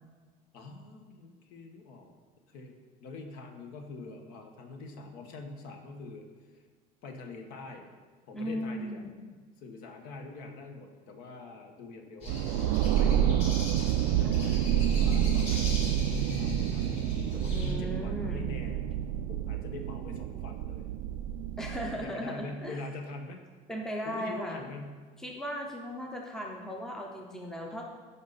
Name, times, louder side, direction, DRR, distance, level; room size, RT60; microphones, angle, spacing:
voice 1, 0.5-2.1 2.5-2.8 3.0-6.3 6.5-6.6 7.0-7.9 8.3-9.0 9.6-13.8 14.0-16.0 16.4-17.0 17.3-18.8 19.3-20.9 22.0-23.4 24.0-25.0, left 3 dB, 60° left, 4 dB, 1.3 m, -44 dB
voice 2, 8.3-9.1 14.2-14.9 17.5-18.5 21.6-22.8 23.7-24.6 25.2-27.8, equal, 5° left, 0 dB, 0.7 m, -37 dB
sound 1, 12.2-17.7, left 1 dB, 35° left, 2.1 m, -39 dB
sound 2, 12.3-22.0, right 10 dB, 85° right, 0.4 m, -28 dB
15.5 x 5.5 x 4.1 m, 1.4 s
cardioid pair, 170°, 17 cm